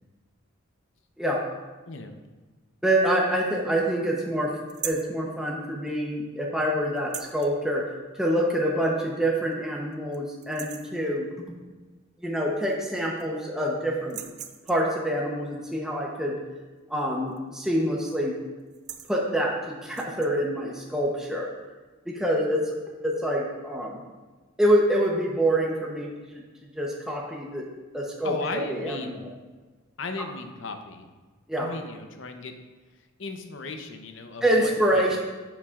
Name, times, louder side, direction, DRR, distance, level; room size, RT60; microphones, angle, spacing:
voice 1, 2.8-4.5 4.8-7.8 8.1-11.6 12.2-14.2 14.7-16.4 16.9-18.4 19.1-21.5 22.1-22.8 23.0-24.0 24.6-27.6 27.9-29.3 31.5-31.7 34.4-35.2, right 1 dB, 5° right, -3 dB, 0.8 m, -26 dB
sound 1, 4.7-5.1 7.0-7.5 8.9-9.0 9.4-9.5 9.9-10.2 10.4-11.0 12.3-12.4 12.7-13.4 14.0-14.9 17.3-17.6 17.9-18.1 18.6-19.2 19.8-20.3, right 10 dB, 35° right, 0.4 m, -39 dB
voice 2, 28.2-29.4 30.0-31.1 31.6-32.5 33.2-35.2, left 3 dB, 60° left, 6 dB, 0.7 m, -36 dB
9.5 x 7.2 x 2.4 m, 1.3 s
head